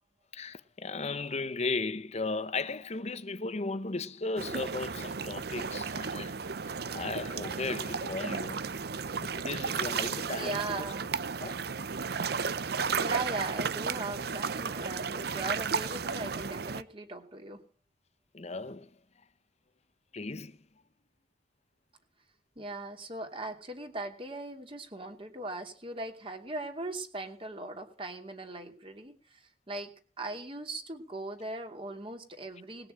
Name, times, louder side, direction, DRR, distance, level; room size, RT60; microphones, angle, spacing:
voice 1, 0.3-6.4 6.6-8.7 9.2-10.8 11.4-11.7 18.3-18.9 20.1-20.6, left 3 dB, 40° left, 0.9 m, -36 dB
sound 1, 4.4-16.8, right 5 dB, 65° right, 0.7 m, -34 dB
voice 2, 10.4-11.1 13.0-17.6 22.6-29.4 29.7-29.9 30.2-32.9, right 2 dB, 30° right, 2.7 m, -39 dB
19.5 x 6.8 x 8.8 m
head